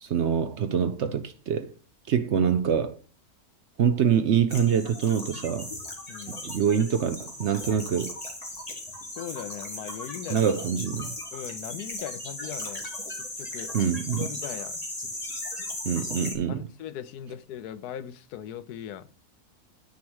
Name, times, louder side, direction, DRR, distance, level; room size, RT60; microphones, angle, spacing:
voice 1, 0.0-1.7 2.1-3.0 3.8-5.7 6.3-8.1 10.3-11.1 13.7-14.3 15.8-16.6, right 7 dB, 60° right, 0.8 m, -25 dB
sound 1, 4.5-16.3, left 1 dB, 25° left, 2.1 m, -37 dB
voice 2, 6.1-6.4 9.1-10.5 11.3-12.9 13.2-13.7 14.2-14.8 16.5-19.1, left 10 dB, 85° left, 1.2 m, -39 dB
9.5 x 4.6 x 6.2 m
omnidirectional pair, 1.6 m